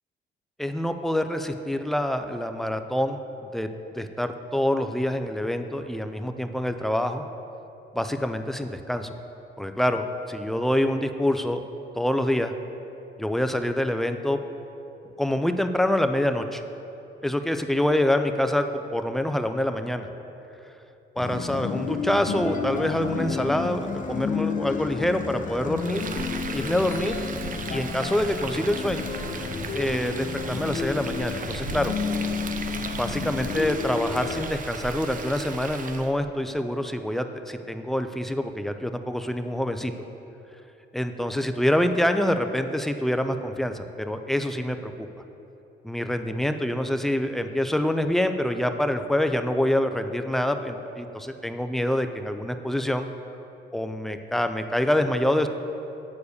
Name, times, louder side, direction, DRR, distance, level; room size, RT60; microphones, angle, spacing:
voice 1, 0.6-3.2 3.5-3.7 4.0-7.3 7.9-9.1 9.6-11.6 11.9-12.5 13.2-14.4 15.2-16.6 17.2-20.1 21.2-26.0 26.5-27.1 27.7-29.1 29.7-31.9 32.9-39.9 40.9-45.1 45.8-53.1 53.7-55.5, left 1 dB, ahead, 7 dB, 0.4 m, -26 dB
sound 1, 21.2-34.4, left 5 dB, 40° left, 0.8 m, -31 dB
Frying (food), 25.8-36.1, right 5 dB, 45° right, 0.6 m, -36 dB
8.5 x 4.7 x 6.5 m, 3.0 s
cardioid pair, 90°, 20 cm